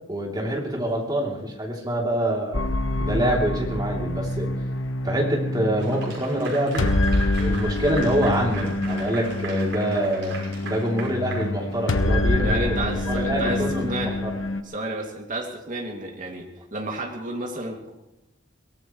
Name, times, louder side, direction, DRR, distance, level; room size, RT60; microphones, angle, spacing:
voice 1, 0.1-2.6 3.0-4.5 5.0-6.9 7.4-14.0 14.2-14.3, right 1 dB, 20° right, -1 dB, 3.2 m, -26 dB
sound 1, 2.5-14.6, left 2 dB, 85° left, 1.2 m, -26 dB
Clapping / Applause, 5.8-12.1, right 3 dB, 75° right, 5.7 m, -38 dB
voice 2, 12.4-14.2 14.6-17.8, right 2 dB, 45° right, 1 dB, 2.6 m, -31 dB
23.5 x 18.0 x 3.2 m, 0.92 s
head